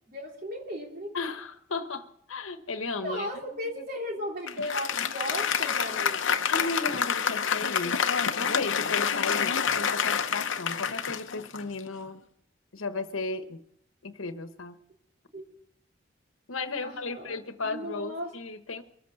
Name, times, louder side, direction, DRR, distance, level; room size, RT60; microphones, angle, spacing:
voice 1, 0.1-1.2 3.0-6.5 15.3-15.4 16.8-18.3, left 1 dB, 45° right, 0 dB, 3.0 m, -36 dB
voice 2, 1.1-3.8 6.5-8.1 8.3-12.2 12.7-13.6 14.0-14.8 16.5-18.8, left 3 dB, 90° left, 9 dB, 1.2 m, -35 dB
Applause, 4.5-12.1, left 7 dB, 70° left, 0.9 m, -28 dB
23.0 x 8.2 x 6.9 m, 0.71 s
head